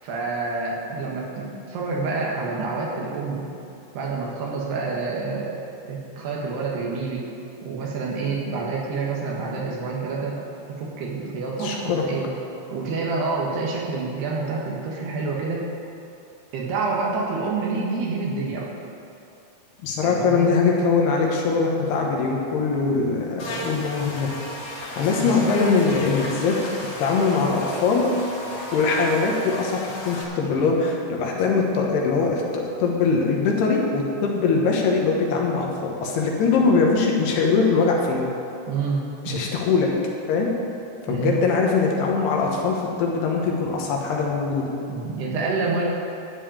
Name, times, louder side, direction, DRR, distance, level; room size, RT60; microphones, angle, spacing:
voice 1, 0.0-3.4 3.9-5.6 5.9-7.3 7.6-10.4 10.7-12.3 12.7-15.7 16.5-18.7 20.0-20.5 23.4-23.7 25.1-25.6 38.7-39.4 41.1-41.4 44.9-45.8, right 4 dB, 70° right, -3 dB, 3.5 m, -28 dB
voice 2, 11.6-12.0 19.8-24.3 25.0-26.6 27.0-28.1 28.7-38.3 39.3-39.9 40.3-40.6 41.1-44.7, left 4 dB, 75° left, -1 dB, 3.1 m, -22 dB
Buzz, 23.4-30.2, equal, 55° left, 3.3 m, -34 dB
12.0 x 5.5 x 8.7 m, 2.7 s
omnidirectional pair, 5.0 m